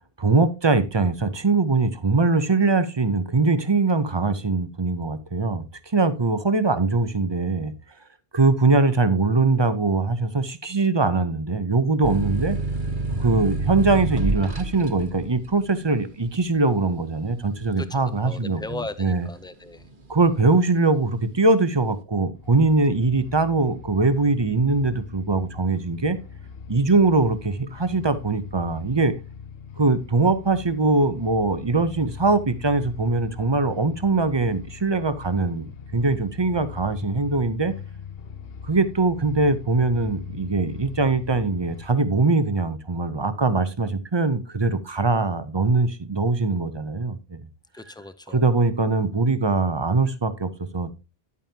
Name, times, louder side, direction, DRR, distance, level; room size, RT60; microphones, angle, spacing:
voice 1, 0.2-7.7 8.3-12.6 13.2-19.3 20.1-26.2 26.7-29.1 29.8-37.7 38.6-47.4 48.3-50.9, right 3 dB, 25° right, 0.8 m, -22 dB
sound 1, 12.0-19.3 19.7-20.5, right 2 dB, 50° right, 1.4 m, -29 dB
voice 2, 17.8-19.9 47.7-48.4, left 2 dB, 5° left, 0.5 m, -37 dB
sound 2, 22.3-41.9, left 7 dB, 65° left, 1.1 m, -40 dB
11.0 x 9.0 x 2.9 m
omnidirectional pair, 1.1 m